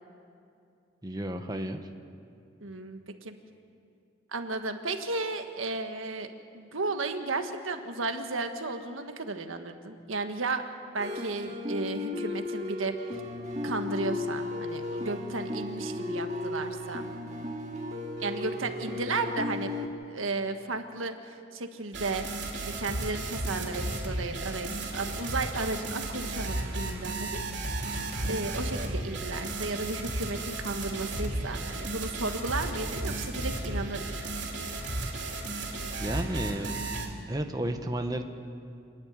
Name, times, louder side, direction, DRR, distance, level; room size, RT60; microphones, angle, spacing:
voice 1, 1.0-1.8 36.0-36.9 37.3-38.2, right 1 dB, 20° right, 5 dB, 1.0 m, -32 dB
voice 2, 2.6-3.3 4.3-10.6 10.9-13.0 13.6-17.1 18.2-19.8 20.1-22.3 22.7-27.4 27.7-27.9 28.3-34.2, right 3 dB, 90° right, 6 dB, 1.5 m, -34 dB
sound 1, 11.0-19.9, left 2 dB, 35° right, 2.0 m, -35 dB
sound 2, 21.9-37.1, right 2 dB, 60° right, 3.4 m, -34 dB
28.0 x 11.0 x 9.6 m, 2.5 s
head